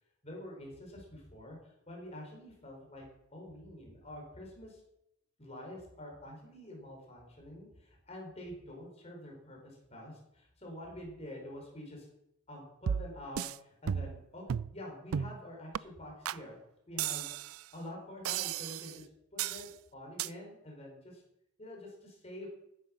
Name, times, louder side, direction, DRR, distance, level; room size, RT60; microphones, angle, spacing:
voice 1, 0.2-3.0 3.3-4.8 5.4-12.1 12.5-14.4 14.7-16.6 16.9-17.3 17.7-21.2 21.6-22.5, left 1 dB, 30° left, -1 dB, 4.7 m, -47 dB
sound 1, 12.9-13.6 13.9-14.2 14.5-14.7 15.1-15.4 15.7-15.8 16.3-16.4 17.0-17.6 18.3-19.0 19.4-19.7 20.2-20.3, right 8 dB, 75° right, 0.4 m, -34 dB
14.5 x 9.6 x 6.4 m, 0.81 s
head